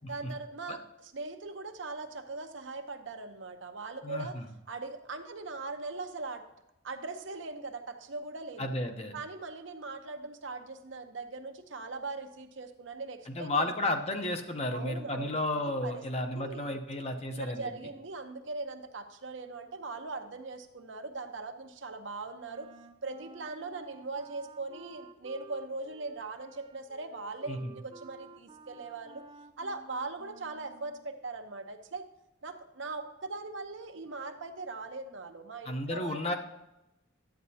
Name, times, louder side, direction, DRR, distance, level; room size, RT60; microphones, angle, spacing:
voice 1, 0.1-4.4 4.7-6.4 6.8-8.7 9.1-13.7 14.7-15.4 15.6-16.0 16.3-16.8 17.3-22.7 23.0-29.2 29.6-32.1 32.4-36.3, right 3 dB, 70° right, 6 dB, 0.8 m, -40 dB
voice 2, 4.0-4.5 8.6-9.1 13.3-17.7 27.5-27.7 35.6-36.3, left 1 dB, 30° left, 5 dB, 0.7 m, -33 dB
Wind instrument woodwind instrument, 22.5-31.1, right 4 dB, 25° right, 0.4 m, -53 dB
11.5 x 8.6 x 2.8 m, 0.90 s
head